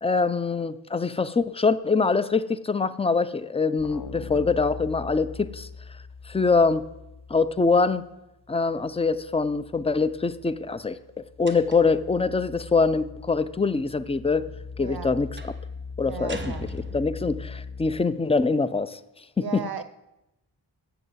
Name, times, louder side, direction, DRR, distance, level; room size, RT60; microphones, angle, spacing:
voice 1, 0.0-5.7 6.3-6.8 7.3-8.0 8.5-11.0 11.4-14.5 14.8-15.5 16.0-16.4 16.7-19.0 19.4-19.6, left 4 dB, 15° left, 0.4 m, -24 dB
sound 1, 3.8-8.1 8.5-18.0, left 5 dB, 60° left, 0.7 m, -41 dB
sound 2, 11.5-12.0 15.4-15.7 16.3-17.4, right 3 dB, 25° right, 1.2 m, -40 dB
voice 2, 14.8-15.1 16.1-16.7 19.4-19.8, right 7 dB, 55° right, 0.6 m, -35 dB
7.8 x 7.0 x 7.7 m
wide cardioid pair, 55°, 45 cm